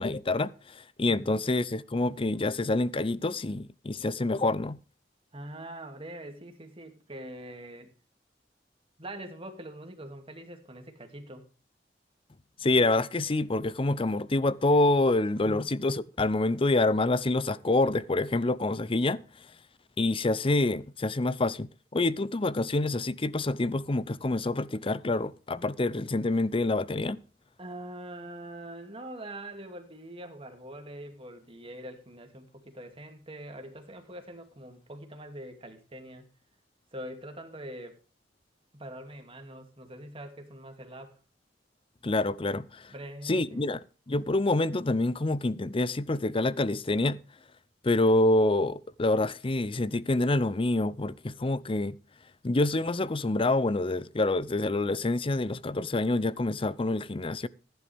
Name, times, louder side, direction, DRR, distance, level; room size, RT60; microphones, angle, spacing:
voice 1, 0.0-4.8 12.6-19.5 20.0-27.2 42.0-42.9 43.3-43.8 44.1-47.2 47.8-52.0 52.4-57.5, left 2 dB, 30° left, 0.6 m, -27 dB
voice 2, 1.0-1.4 5.3-7.9 9.0-11.5 15.4-15.7 27.6-36.3 36.9-38.0 38.7-41.2 42.9-43.7, right 1 dB, 30° right, 2.5 m, -43 dB
15.0 x 10.5 x 3.5 m
head